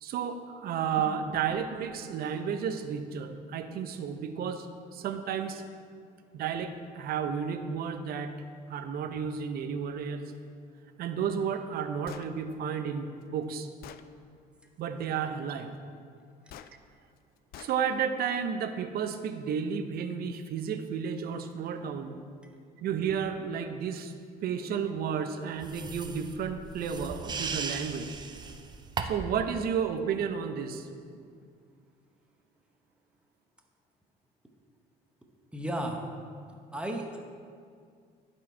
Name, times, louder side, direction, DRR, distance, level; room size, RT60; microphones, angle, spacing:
voice 1, 0.0-4.7 4.9-5.6 6.3-8.4 8.7-10.3 11.0-13.7 14.8-15.7 17.6-22.2 22.8-24.1 24.4-28.1 29.0-30.9, right 7 dB, 65° right, 8 dB, 0.7 m, -32 dB
Gunshot gunfire, 12.1-12.3 13.2-13.3 13.8-14.1 16.5-16.7 17.5-17.8, left 11 dB, 65° left, 0.4 m, -46 dB
sound 1, 25.6-29.4, right 4 dB, 25° right, 0.5 m, -37 dB
voice 2, 35.5-36.0 36.7-37.2, right 1 dB, 5° right, 2 dB, 0.9 m, -33 dB
11.0 x 4.6 x 4.5 m, 2.2 s
cardioid pair, 110°, 17 cm